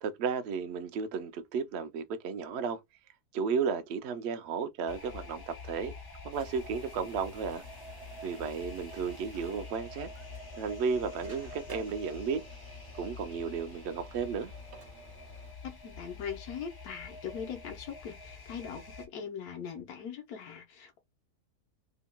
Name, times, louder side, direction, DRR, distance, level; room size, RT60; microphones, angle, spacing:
voice 1, 0.0-2.8 3.3-5.9 6.2-7.6 8.2-10.1 10.6-12.4 12.9-14.5, right 6 dB, 80° right, 0.5 m, -33 dB
sound 1, 4.9-19.1, left 3 dB, 35° left, 0.3 m, -46 dB
sound 2, 6.3-15.5, right 3 dB, 40° right, 1.0 m, -55 dB
voice 2, 15.6-21.0, left 7 dB, 70° left, 1.3 m, -41 dB
3.5 x 2.8 x 2.2 m
omnidirectional pair, 1.7 m